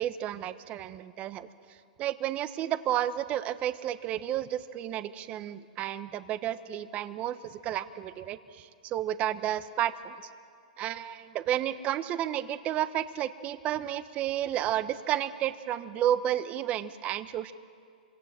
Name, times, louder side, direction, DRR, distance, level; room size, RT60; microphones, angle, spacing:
voice 1, 0.0-1.5 2.0-10.2 10.8-17.5, right 11 dB, 30° right, 12 dB, 1.1 m, -31 dB
26.5 x 25.5 x 7.7 m, 2.2 s
hypercardioid pair, 135°, 5 cm